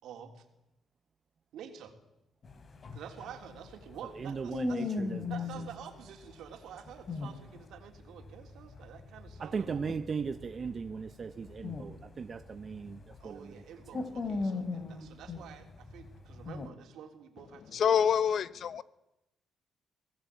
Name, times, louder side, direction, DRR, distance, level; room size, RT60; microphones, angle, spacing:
voice 1, 0.0-0.4 1.5-1.9 2.9-4.9 5.3-10.0 13.2-18.0, right 9 dB, 80° right, 3.5 m, -49 dB
sound 1, 2.4-5.7 6.8-13.3 13.6-16.7, left 4 dB, 45° left, 3.0 m, -38 dB
voice 2, 4.2-4.8 5.1-5.2 9.4-13.0 13.2-13.5, right 5 dB, 40° right, 0.9 m, -37 dB
voice 3, 17.7-18.8, left 8 dB, 60° left, 0.9 m, -26 dB
24.0 x 17.5 x 8.4 m
cardioid pair, 90°, 0 cm